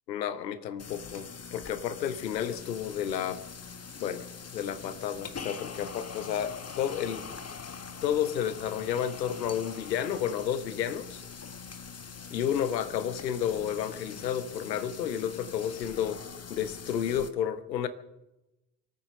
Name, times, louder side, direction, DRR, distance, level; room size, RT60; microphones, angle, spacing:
voice 1, 0.1-3.4 4.0-4.3 4.5-7.3 8.0-11.2 12.3-16.2 16.5-17.9, left 9 dB, 85° left, 14 dB, 0.9 m, -31 dB
sound 1, 0.8-17.3, left 5 dB, 30° left, 1.6 m, -43 dB
24.0 x 9.2 x 6.5 m, 0.94 s
figure-of-eight pair, 45°, 49 cm